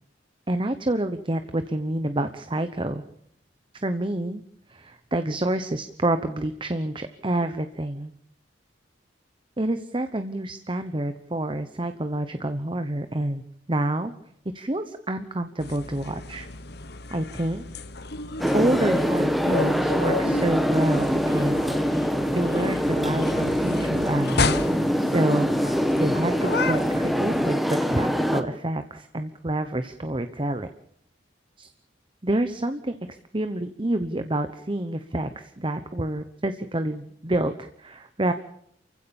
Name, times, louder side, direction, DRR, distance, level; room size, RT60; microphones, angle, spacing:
voice 1, 0.5-3.0 3.7-4.4 4.7-8.1 9.6-13.4 13.7-14.1 14.5-16.5 17.1-17.6 18.5-21.6 22.3-24.4 25.1-25.5 26.0-30.7 31.6-31.7 32.2-38.3, right 1 dB, 25° right, 9 dB, 1.0 m, -28 dB
sound 1, 15.6-27.5, left 3 dB, 60° left, 1.3 m, -32 dB
sound 2, 18.4-28.4, equal, ahead, 1.6 m, -24 dB
29.0 x 16.0 x 7.2 m, 0.70 s
head